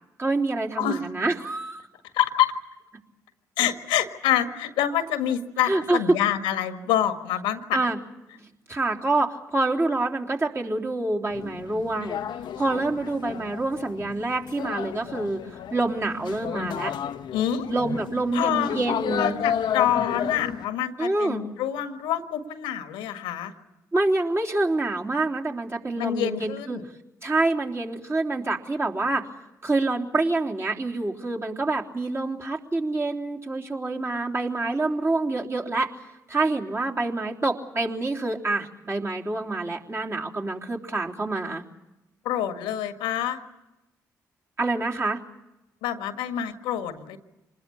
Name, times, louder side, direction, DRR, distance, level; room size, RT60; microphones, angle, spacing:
voice 1, 0.2-1.9 5.7-6.2 7.7-8.0 8.3-12.2 12.6-16.9 17.7-19.4 21.0-21.4 23.9-26.8 27.2-29.3 29.6-35.9 36.3-41.6 44.6-45.2, right 2 dB, 30° right, -1 dB, 3.4 m, -26 dB
voice 2, 2.1-2.5 3.6-7.9 17.3-17.7 18.3-18.7 19.2-23.5 25.9-26.8 42.2-43.4 45.8-47.2, left 10 dB, 85° left, 8 dB, 1.6 m, -26 dB
sound 1, 11.3-20.7, left 8 dB, 70° left, 1.0 m, -32 dB
26.0 x 20.5 x 8.5 m, 0.98 s
hypercardioid pair, 50°, 8 cm